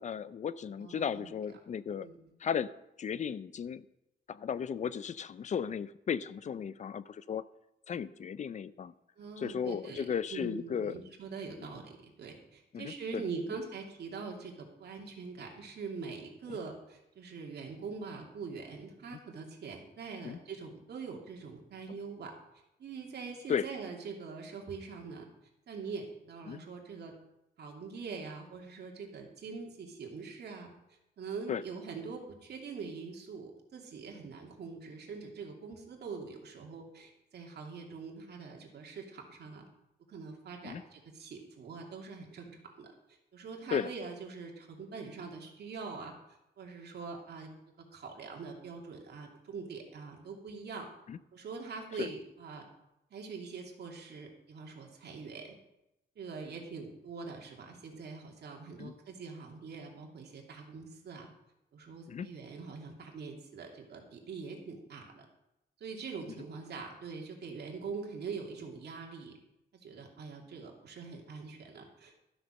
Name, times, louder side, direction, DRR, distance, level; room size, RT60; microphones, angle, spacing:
voice 1, 0.0-2.1 2.4-2.7 3.0-3.8 4.3-7.4 7.9-8.9 9.4-10.9 12.7-13.2 16.5-16.6 19.1-19.2 20.2-20.4 23.5-23.7 26.5-26.6 31.5-31.6 40.6-40.8 43.7-43.9 51.1-51.2 52.0-52.1 58.8-58.9 62.1-62.3, left 7 dB, 40° left, 16 dB, 0.5 m, -35 dB
voice 2, 0.8-1.3 2.0-2.2 9.2-22.3 22.8-25.3 25.7-27.1 27.6-39.7 40.1-42.9 43.3-46.1 46.6-47.5 47.9-50.9 51.3-52.7 53.1-55.5 56.2-61.3 61.7-65.3 65.8-69.3 69.8-72.3, right 5 dB, 65° right, 1 dB, 2.7 m, -43 dB
13.0 x 7.9 x 6.4 m, 0.88 s
wide cardioid pair, 150°, 18 cm